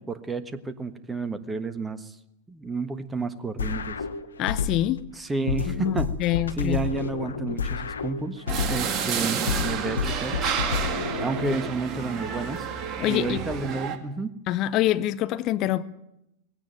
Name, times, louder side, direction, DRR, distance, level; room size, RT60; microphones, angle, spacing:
voice 1, 0.0-2.1 2.5-4.0 5.2-6.1 6.6-8.4 8.7-10.4 11.2-12.7 13.1-14.3, right 3 dB, 10° right, 1.4 m, -31 dB
sound 1, 3.6-5.0 5.5-9.0 9.5-11.6, left 6 dB, 70° left, 1.2 m, -30 dB
voice 2, 4.4-5.0 5.7-6.8 13.0-13.4 14.5-15.8, left 14 dB, 40° left, 0.9 m, -25 dB
sound 2, 8.5-14.0, right 7 dB, 35° right, 2.2 m, -30 dB
19.5 x 17.0 x 9.2 m
figure-of-eight pair, 90°, 0 cm